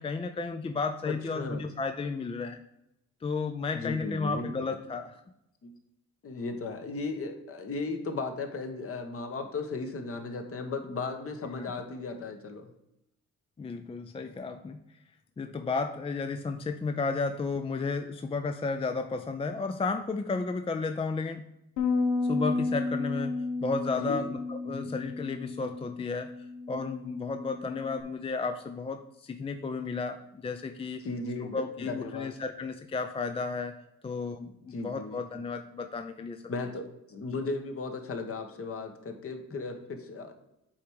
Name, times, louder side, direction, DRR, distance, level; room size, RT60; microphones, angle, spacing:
voice 1, 0.0-2.6 3.2-5.2 11.5-11.7 13.6-14.8 15.4-21.4 22.2-23.4 23.6-26.3 26.7-31.0 31.5-33.7 34.0-36.4, left 4 dB, 20° left, 7 dB, 0.4 m, -33 dB
voice 2, 1.1-1.7 3.7-4.5 5.6-5.7 6.2-12.7 23.9-24.3 24.7-24.8 31.0-32.3 34.3-35.2 36.5-40.3, left 3 dB, 50° left, 5 dB, 1.2 m, -36 dB
Bass guitar, 21.8-28.0, left 3 dB, 85° left, 1.0 m, -32 dB
8.6 x 3.4 x 4.7 m, 0.85 s
cardioid pair, 90°, 30 cm